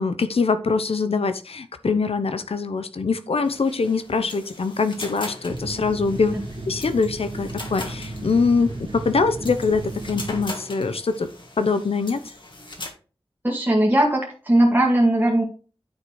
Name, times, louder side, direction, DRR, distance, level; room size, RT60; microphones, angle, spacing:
voice 1, 0.0-6.3 6.7-11.3 11.6-12.2, left 4 dB, 85° left, 11 dB, 0.8 m, -23 dB
sound 1, 3.4-12.9, left 2 dB, 55° left, 2.1 m, -40 dB
sound 2, 5.5-10.5, right 2 dB, 60° right, 1.8 m, -34 dB
voice 2, 13.4-15.4, right 1 dB, 20° right, -1 dB, 1.9 m, -19 dB
9.6 x 4.2 x 4.7 m, 0.37 s
wide cardioid pair, 50°, 10 cm